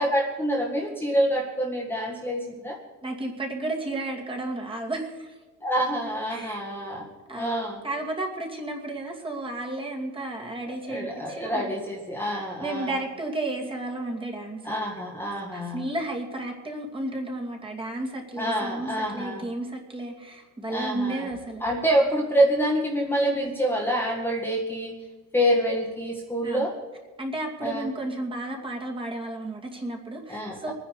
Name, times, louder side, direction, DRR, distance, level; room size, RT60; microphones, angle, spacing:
voice 1, 0.0-2.8 5.6-7.8 10.8-13.0 14.6-15.8 18.4-19.4 20.7-21.3 21.6-25.0 25.3-26.7 27.6-27.9 30.3-30.7, equal, 5° left, -2 dB, 1.8 m, -26 dB
voice 2, 3.0-5.4 6.3-6.6 7.3-7.6 7.8-11.7 12.6-14.6 15.5-21.6 26.4-26.7 27.2-30.7, right 2 dB, 15° right, 0 dB, 2.4 m, -33 dB
23.0 x 9.9 x 4.8 m, 1.3 s
cardioid pair, 135°, 31 cm